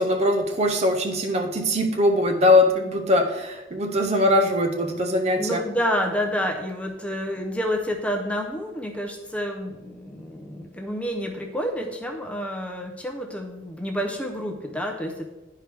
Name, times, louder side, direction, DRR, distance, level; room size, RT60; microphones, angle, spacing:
voice 1, 0.0-5.6, left 1 dB, 35° right, 3 dB, 0.6 m, -21 dB
voice 2, 5.4-15.2, equal, 5° left, 2 dB, 0.7 m, -29 dB
10.5 x 4.6 x 3.4 m, 1.1 s
head